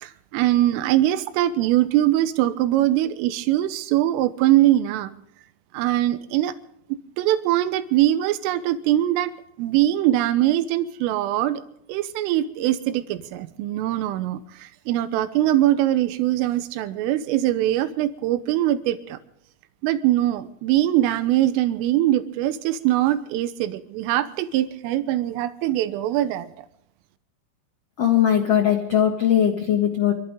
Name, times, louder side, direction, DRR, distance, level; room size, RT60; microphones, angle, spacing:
voice 1, 0.0-5.1 5.7-6.5 7.2-9.3 9.6-11.6 11.9-19.2 19.8-26.7, right 13 dB, 80° right, 12 dB, 3.5 m, -22 dB
voice 2, 28.0-30.1, left 10 dB, 85° left, 2 dB, 1.4 m, -19 dB
26.0 x 15.0 x 3.7 m, 0.74 s
omnidirectional pair, 5.9 m